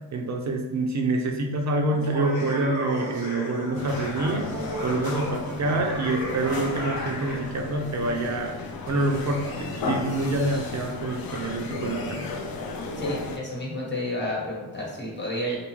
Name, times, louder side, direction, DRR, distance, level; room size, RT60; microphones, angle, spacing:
voice 1, 0.1-4.5 4.8-8.6 8.9-12.3, right 2 dB, 40° right, 2 dB, 0.5 m, -26 dB
Laughter, 1.9-7.5, equal, 75° left, 1.3 m, -34 dB
sound 1, 3.8-13.4, left 3 dB, 55° left, 0.5 m, -34 dB
voice 2, 13.0-15.6, left 1 dB, 25° left, -4 dB, 1.1 m, -30 dB
2.6 x 2.4 x 3.0 m, 1.2 s
cardioid pair, 60°, 44 cm